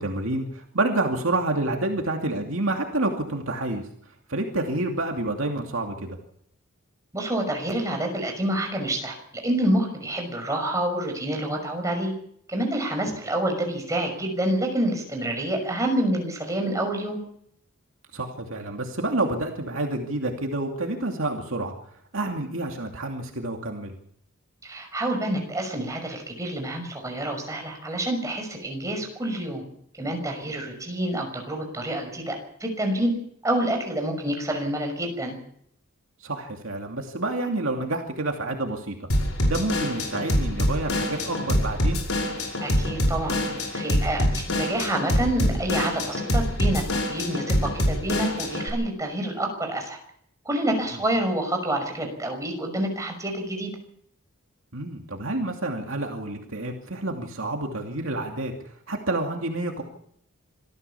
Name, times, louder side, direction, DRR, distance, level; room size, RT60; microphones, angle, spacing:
voice 1, 0.0-3.8 4.3-6.2 18.1-21.7 22.1-23.9 36.2-39.0 39.4-42.1 54.7-58.5 58.9-59.8, right 2 dB, 65° right, 2 dB, 2.7 m, -28 dB
voice 2, 7.1-9.2 9.4-12.1 12.5-17.2 24.6-29.6 30.0-33.1 33.4-35.3 42.6-43.4 43.7-50.0 50.4-53.7, right 1 dB, 15° right, 3 dB, 5.9 m, -27 dB
Drum kit / Drum, 39.1-48.7, left 1 dB, 75° left, 5.7 m, -25 dB
26.0 x 14.5 x 7.1 m, 0.69 s
head